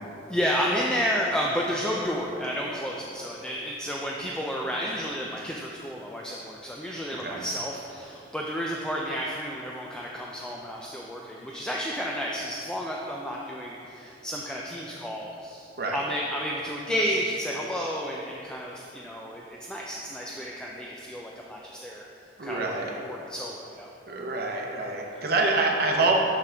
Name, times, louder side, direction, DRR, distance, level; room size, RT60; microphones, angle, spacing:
voice 1, 0.3-22.7 23.1-23.9, equal, 5° left, -2 dB, 0.3 m, -31 dB
voice 2, 22.4-23.0 24.1-26.1, right 3 dB, 60° right, 0 dB, 0.8 m, -26 dB
5.9 x 5.9 x 3.3 m, 2.8 s
head